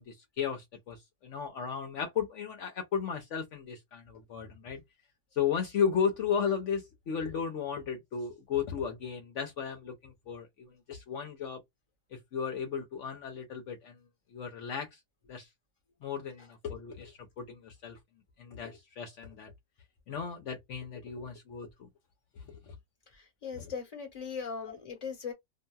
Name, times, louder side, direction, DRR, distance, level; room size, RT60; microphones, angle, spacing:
voice 1, 0.0-4.8 5.3-11.6 12.1-14.0 14.3-15.0 15.3-15.5 16.0-18.0 18.4-19.5 20.1-21.9 22.4-22.7 23.5-23.7 24.7-24.8, left 7 dB, 70° left, 1.0 m, -35 dB
voice 2, 23.1-25.3, left 6 dB, 30° left, 1.1 m, -39 dB
2.8 x 2.5 x 2.2 m
omnidirectional pair, 1.4 m